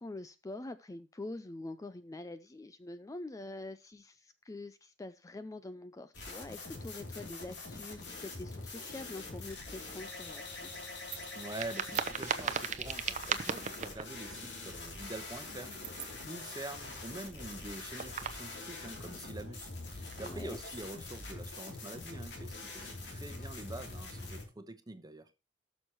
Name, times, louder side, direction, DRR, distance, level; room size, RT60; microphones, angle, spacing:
voice 1, 0.0-10.7 20.2-20.6, left 2 dB, 20° left, 0.4 m, -45 dB
sound 1, 6.1-24.4, left 3 dB, 65° left, 3.0 m, -44 dB
sound 2, 11.1-14.1 15.7-16.1 17.6-18.5 18.8-18.9 20.0-20.5, right 7 dB, 40° right, 0.7 m, -37 dB
voice 2, 11.3-25.3, right 2 dB, 20° right, 1.0 m, -46 dB
18.0 x 6.3 x 3.0 m
head